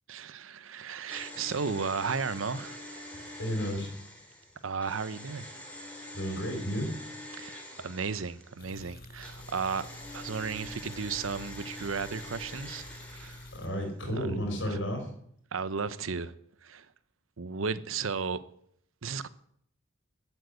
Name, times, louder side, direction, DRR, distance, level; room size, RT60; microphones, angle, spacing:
voice 1, 0.1-2.8 4.6-5.5 7.4-9.9 10.1-12.8 13.1-13.4 14.2-14.3 15.5-16.3 16.6-16.9 17.4-18.4 19.0-19.3, right 5 dB, 80° right, 0.8 m, -34 dB
sound 1, 1.1-8.7 9.2-13.9 14.1-14.2, left 1 dB, 5° left, 3.0 m, -45 dB
voice 2, 3.4-3.9 6.1-6.9 13.5-15.1, equal, 65° left, 4.3 m, -32 dB
sound 2, 8.6-13.7, left 1 dB, 50° left, 1.4 m, -48 dB
12.0 x 8.1 x 8.2 m
head